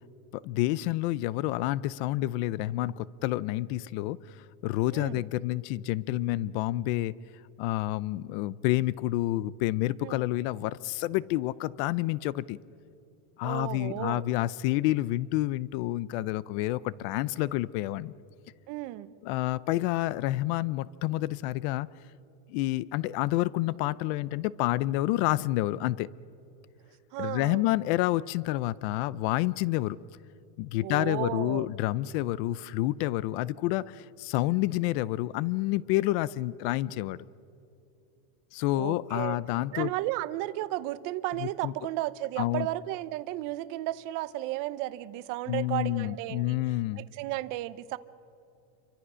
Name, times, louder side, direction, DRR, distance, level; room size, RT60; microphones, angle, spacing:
voice 1, 0.3-7.1 7.6-12.6 13.4-18.1 19.2-21.9 22.5-26.1 27.2-30.0 30.6-37.2 38.5-39.9 41.4-41.7 42.4-42.7 45.5-47.0, left 16 dB, 45° left, 20 dB, 0.5 m, -29 dB
voice 2, 4.9-5.2 10.0-10.2 13.4-14.2 18.7-19.1 27.1-27.6 30.8-31.7 38.8-39.4 39.7-46.6 46.9-48.0, right 16 dB, 40° right, 15 dB, 0.8 m, -34 dB
28.0 x 24.0 x 6.2 m, 2.7 s
supercardioid pair, 165°, 46 cm